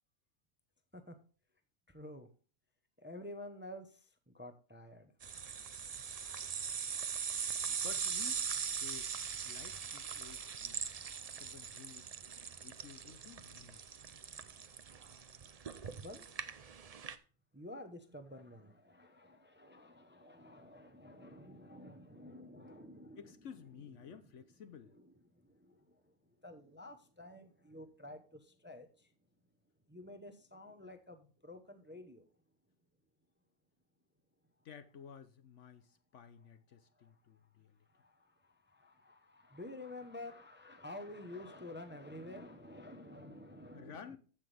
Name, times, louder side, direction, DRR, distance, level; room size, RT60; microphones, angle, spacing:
voice 1, 1.9-2.3 3.0-5.1 15.7-16.3 17.5-23.3 24.0-24.2 24.9-25.0 25.3-29.1 29.9-32.2 37.0-37.2 37.9-44.2, left 1 dB, 10° right, 0.8 m, -51 dB
sound 1, 5.2-17.2, right 6 dB, 65° right, 0.3 m, -41 dB
voice 2, 7.7-9.1 9.4-10.9 11.2-12.2 12.6-14.0 23.2-25.0 34.6-37.8 43.7-44.2, left 7 dB, 60° left, 1.0 m, -54 dB
14.5 x 6.0 x 3.4 m
omnidirectional pair, 1.5 m